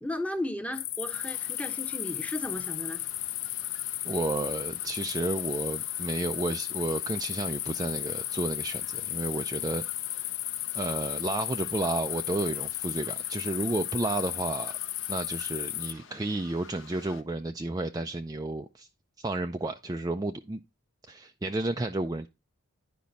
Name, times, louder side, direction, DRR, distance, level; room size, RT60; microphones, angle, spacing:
voice 1, 0.0-3.0, left 1 dB, 5° left, 0.9 m, -35 dB
sound 1, 0.7-15.9, left 13 dB, 50° left, 0.6 m, -34 dB
sound 2, 1.1-17.2, left 5 dB, 70° left, 1.1 m, -52 dB
voice 2, 4.0-10.3 10.7-14.8 15.1-18.9 19.2-20.6 21.1-22.3, right 2 dB, 15° right, 0.4 m, -32 dB
10.5 x 5.1 x 4.0 m
head